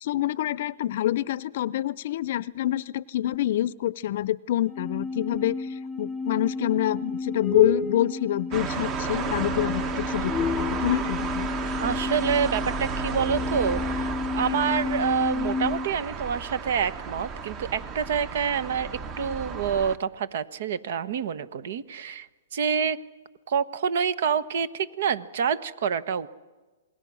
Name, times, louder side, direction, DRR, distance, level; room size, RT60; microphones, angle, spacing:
voice 1, 0.0-5.7 6.0-11.5, left 13 dB, 55° left, 20 dB, 0.6 m, -26 dB
sound 1, 4.7-15.9, left 4 dB, 5° left, 0.7 m, -31 dB
sound 2, 8.5-20.0, right 5 dB, 25° right, 1.2 m, -33 dB
voice 2, 11.8-18.9 19.2-23.0 23.5-26.3, right 7 dB, 60° right, 16 dB, 1.1 m, -27 dB
28.0 x 20.0 x 6.3 m, 1.2 s
hypercardioid pair, 145°, 0 cm